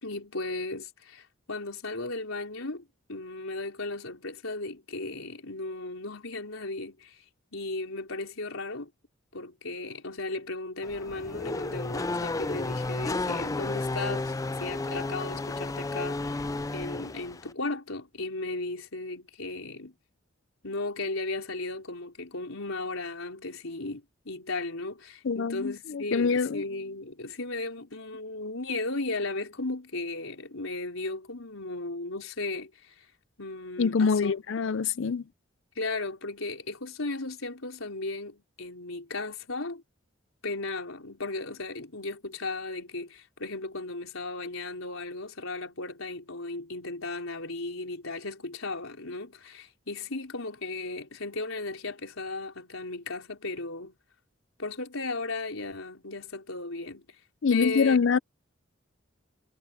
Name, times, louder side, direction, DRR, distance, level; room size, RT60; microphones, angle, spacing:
voice 1, 0.0-7.2 7.5-8.9 9.3-16.4 16.7-19.9 20.6-33.1 33.4-34.3 35.8-39.8 40.4-53.9 54.6-57.1 57.5-58.0, left 2 dB, 90° left, 4.5 m, -36 dB
Race car auto racing / Accelerating revving vroom, 10.8-17.5, left 2 dB, 15° left, 0.3 m, -32 dB
voice 2, 25.2-26.6 33.8-35.2 57.4-58.2, left 5 dB, 70° left, 0.5 m, -25 dB
head